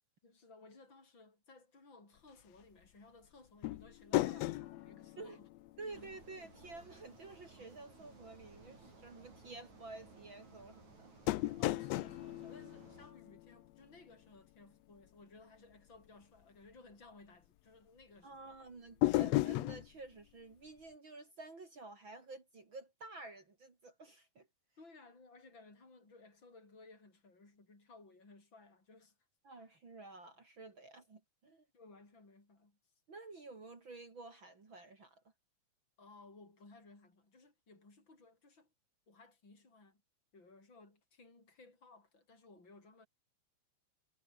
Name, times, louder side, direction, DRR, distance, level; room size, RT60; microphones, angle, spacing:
voice 1, 0.2-5.5 5.8-6.1 11.5-18.6 24.8-29.2 31.7-32.8 36.0-38.7 39.1-40.0 40.3-43.1, left 3 dB, 35° left, 7.9 m, -59 dB
sound 1, 3.6-6.3 6.5-6.6 11.3-13.8 19.0-19.9, left 17 dB, 75° left, 1.7 m, -35 dB
voice 2, 5.8-11.1 18.2-24.5 29.4-31.7 33.1-35.2, right 3 dB, 40° right, 3.8 m, -51 dB
sound 2, 5.9-13.1, right 3 dB, 70° right, 8.3 m, -59 dB
omnidirectional pair, 3.4 m